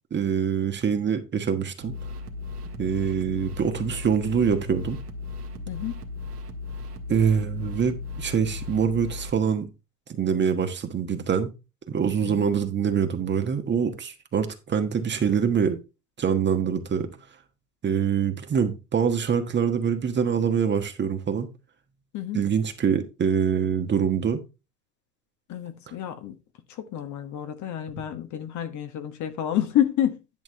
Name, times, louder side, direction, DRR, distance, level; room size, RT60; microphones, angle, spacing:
voice 1, 0.1-1.9 2.8-5.0 7.1-9.7 10.1-11.5 11.9-15.8 16.2-17.1 17.8-21.5 22.3-24.4, right 7 dB, 25° right, 1.3 m, -24 dB
sound 1, 1.8-9.3, left 3 dB, 80° right, 1.7 m, -36 dB
voice 2, 5.7-6.0 12.2-12.5 22.1-22.4 25.5-26.4 26.7-30.2, left 11 dB, 40° left, 1.3 m, -29 dB
11.0 x 6.0 x 3.5 m
hypercardioid pair, 85°, 46 cm